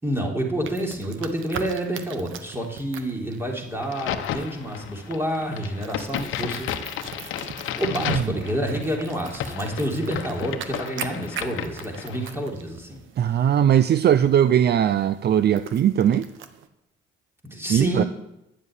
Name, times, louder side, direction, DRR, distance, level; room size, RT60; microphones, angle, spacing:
voice 1, 0.0-6.7 7.8-13.0 13.3-13.5 17.4-18.1, right 1 dB, 10° right, 0 dB, 3.6 m, -28 dB
sound 1, 0.6-16.7, right 8 dB, 80° right, 1.2 m, -42 dB
Crack, 3.8-12.4, left 9 dB, 85° left, 1.0 m, -33 dB
voice 2, 13.2-16.3 17.7-18.0, right 10 dB, 55° right, 13 dB, 0.6 m, -19 dB
11.0 x 7.4 x 9.8 m, 0.90 s
cardioid pair, 90°, 20 cm